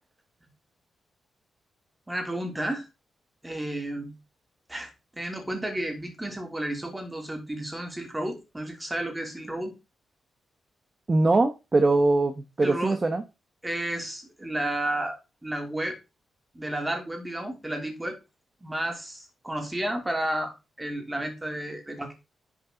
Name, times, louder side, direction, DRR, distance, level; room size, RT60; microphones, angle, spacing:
voice 1, 2.1-2.9 3.4-4.1 4.7-9.7 12.6-13.0 13.6-15.2 15.4-16.0 16.5-18.2 18.6-22.1, right 1 dB, 15° right, 4 dB, 3.1 m, -32 dB
voice 2, 11.1-13.2, right 2 dB, 30° right, 8 dB, 1.1 m, -22 dB
11.0 x 5.6 x 3.9 m, 0.26 s
cardioid pair, 105°, 0 cm